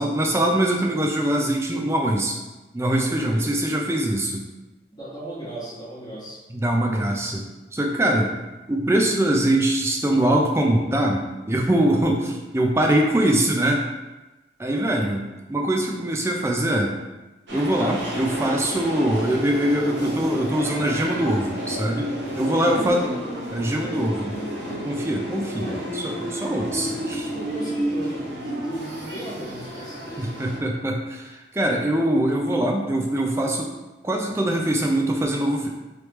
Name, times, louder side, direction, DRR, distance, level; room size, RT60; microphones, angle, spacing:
voice 1, 0.0-2.4 2.7-4.4 6.5-8.3 8.7-13.8 14.6-15.2 15.5-16.9 17.5-23.0 23.5-24.3 24.8-25.7 26.0-27.3 30.2-33.7 34.0-35.7, right 1 dB, 15° right, 1 dB, 0.4 m, -23 dB
voice 2, 4.9-6.4 14.6-14.9 19.8-20.0 22.4-23.4 25.6-25.9 27.3-30.5, right 1 dB, 25° left, -9 dB, 1.3 m, -36 dB
sound 1, 17.5-30.6, equal, 80° right, 0.9 m, -31 dB
3.3 x 3.2 x 3.0 m, 1.1 s
head